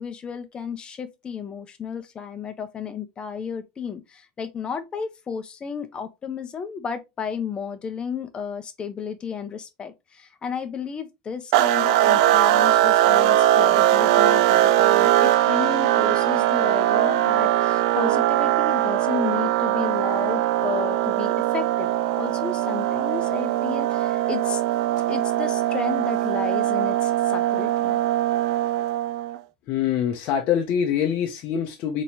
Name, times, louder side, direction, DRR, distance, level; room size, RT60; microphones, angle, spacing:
voice 1, 0.0-21.9 22.2-24.7 25.0-28.0, left 6 dB, 30° left, 0.8 m, -33 dB
sound 1, 11.5-29.4, right 13 dB, 75° right, 0.3 m, -21 dB
voice 2, 29.7-32.0, left 9 dB, 55° left, 0.7 m, -24 dB
4.1 x 3.0 x 2.7 m
supercardioid pair, 115°, 4 cm